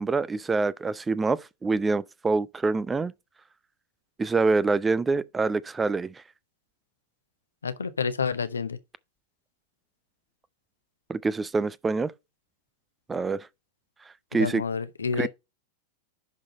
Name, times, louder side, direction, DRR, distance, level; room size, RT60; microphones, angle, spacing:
voice 1, 0.0-3.1 4.2-6.2 11.1-12.1 13.1-13.5 14.3-14.6 15.2-15.3, right 3 dB, 15° right, 0.4 m, -26 dB
voice 2, 7.6-8.8 14.3-15.3, left 5 dB, 75° left, 0.7 m, -29 dB
10.5 x 3.9 x 4.1 m
figure-of-eight pair, 90°, 0 cm